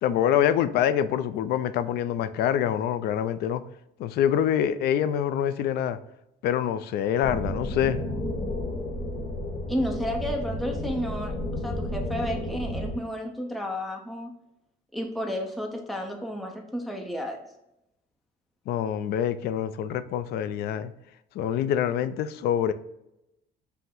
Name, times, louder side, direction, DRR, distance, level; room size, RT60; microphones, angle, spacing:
voice 1, 0.0-3.6 4.0-6.0 6.4-8.0 18.7-20.9 21.4-22.7, left 10 dB, 70° left, 0.4 m, -25 dB
sound 1, 7.2-13.0, left 1 dB, 45° left, 0.9 m, -32 dB
voice 2, 9.7-14.3 14.9-17.4, equal, ahead, 0.7 m, -32 dB
5.5 x 2.1 x 3.7 m
cardioid pair, 110°, 17 cm